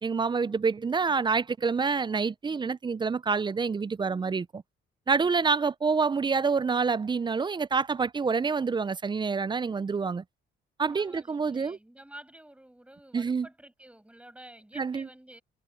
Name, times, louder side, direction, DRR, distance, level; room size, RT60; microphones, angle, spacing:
voice 1, 0.0-4.6 5.1-10.2 10.8-11.8 13.1-13.5 14.8-15.1, right 5 dB, 25° right, 0.4 m, -27 dB
voice 2, 10.9-15.4, right 1 dB, 5° right, 7.2 m, -50 dB
cardioid pair, 90°, 20 cm